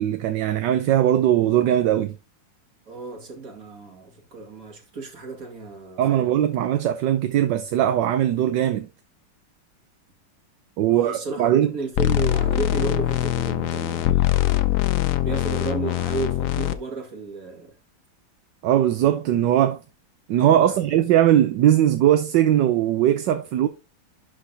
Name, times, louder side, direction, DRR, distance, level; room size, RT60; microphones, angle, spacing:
voice 1, 0.0-2.1 6.0-8.9 10.8-11.7 18.6-19.8 20.3-23.7, right 11 dB, 70° right, 1.2 m, -20 dB
voice 2, 2.9-6.5 10.8-14.7 15.2-17.7 20.4-20.8, right 3 dB, 45° right, 2.5 m, -33 dB
sound 1, 12.0-16.7, left 13 dB, 85° left, 0.7 m, -22 dB
11.0 x 5.0 x 2.7 m
omnidirectional pair, 2.2 m